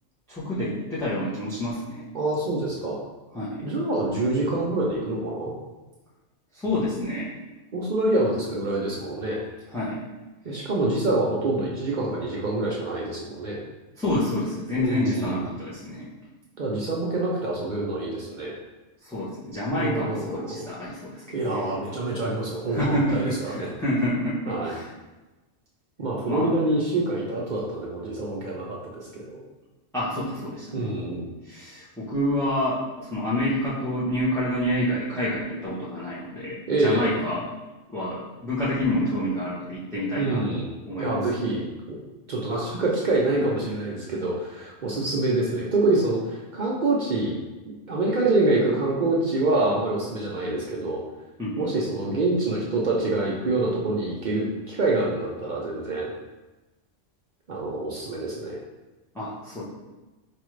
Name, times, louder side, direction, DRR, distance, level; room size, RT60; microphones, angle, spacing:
voice 1, 0.3-2.1 3.3-3.6 6.5-7.3 9.7-10.0 14.0-16.1 19.0-21.7 22.7-24.9 26.3-26.5 29.9-30.9 31.5-37.5 37.9-41.2 51.4-51.7 59.1-59.6, left 1 dB, 5° left, -9 dB, 0.5 m, -28 dB
voice 2, 2.1-3.0 3.6-5.5 7.7-9.4 10.4-13.6 14.8-15.4 16.6-18.5 19.8-20.6 21.3-23.7 24.5-24.7 26.0-29.4 30.7-31.3 36.7-37.2 40.2-40.7 41.0-42.0 42.3-47.3 47.9-51.0 51.6-56.1 57.5-58.6, right 2 dB, 55° right, -4 dB, 0.5 m, -26 dB
4.8 x 2.4 x 3.1 m, 1.1 s
omnidirectional pair, 1.3 m